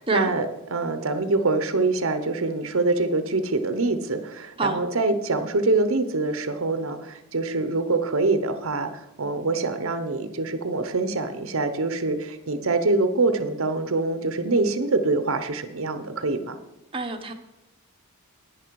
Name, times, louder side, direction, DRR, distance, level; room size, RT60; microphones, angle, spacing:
voice 1, 0.0-16.6, right 3 dB, 65° right, 10 dB, 0.9 m, -25 dB
voice 2, 16.9-17.3, right 3 dB, 25° right, 4 dB, 0.9 m, -26 dB
11.0 x 9.7 x 4.7 m, 0.94 s
head